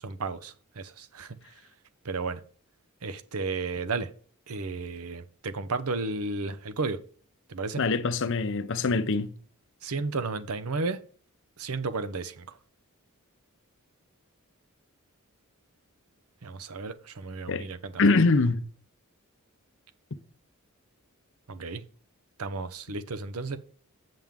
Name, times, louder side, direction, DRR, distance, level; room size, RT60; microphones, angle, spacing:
voice 1, 0.0-1.4 2.0-2.4 3.0-4.1 4.5-7.0 7.5-7.8 9.8-11.0 11.6-12.6 16.4-18.2 21.5-21.8 22.4-23.6, right 3 dB, 75° right, 0.8 m, -33 dB
voice 2, 7.8-9.3 17.5-17.7 18.0-18.7, left 3 dB, 55° left, 0.6 m, -24 dB
7.7 x 7.2 x 3.6 m
head